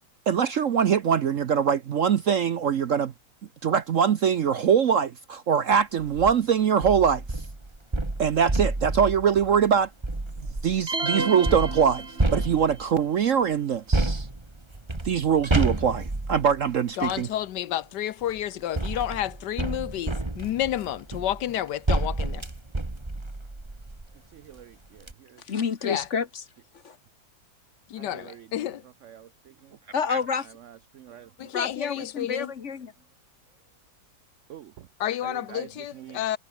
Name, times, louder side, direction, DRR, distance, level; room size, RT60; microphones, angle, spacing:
voice 1, 0.3-3.1 3.6-7.2 8.2-9.9 10.6-12.0 12.3-14.3 15.0-17.3 30.1-30.2, right 7 dB, 55° right, 0.9 m, -23 dB
sound 1, 6.0-6.3 6.8-10.8 11.5-13.0 13.9-17.3 18.2-24.1 24.6-24.7 25.0-25.1, right 2 dB, 15° right, 1.9 m, -30 dB
sound 2, 10.9-12.7, right 3 dB, 35° right, 3.0 m, -31 dB
voice 2, 17.0-22.5 25.8-26.1 27.9-28.8 31.4-32.5 35.0-36.4, left 12 dB, 70° left, 1.3 m, -30 dB
voice 3, 24.3-25.0 28.0-28.4 29.1-29.3 30.9-31.3 34.5-34.7 35.2-35.7 36.0-36.2, right 10 dB, 85° right, 0.6 m, -44 dB
voice 4, 25.5-26.4 26.8-27.0 29.9-30.5 31.5-32.9, left 6 dB, 45° left, 1.4 m, -29 dB
omnidirectional pair, 2.0 m